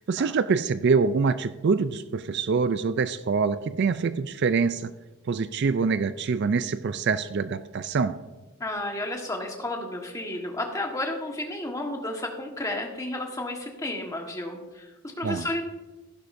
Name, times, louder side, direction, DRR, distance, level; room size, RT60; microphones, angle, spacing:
voice 1, 0.1-4.9 5.3-8.2 15.2-15.5, right 5 dB, 50° right, 13 dB, 0.4 m, -25 dB
voice 2, 8.6-15.6, left 1 dB, 15° left, 1 dB, 1.4 m, -32 dB
15.0 x 11.5 x 2.6 m, 1.1 s
head